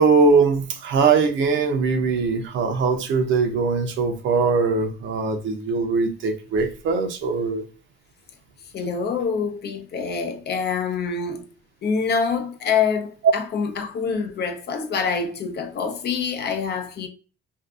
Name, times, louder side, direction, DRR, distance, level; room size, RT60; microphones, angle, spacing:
voice 1, 0.0-7.6 13.2-13.3, right 4 dB, 75° right, 0.6 m, -21 dB
voice 2, 8.7-11.5 11.8-17.1, left 5 dB, 55° left, 0.5 m, -26 dB
2.6 x 2.4 x 2.3 m
cardioid pair, 90°, 20 cm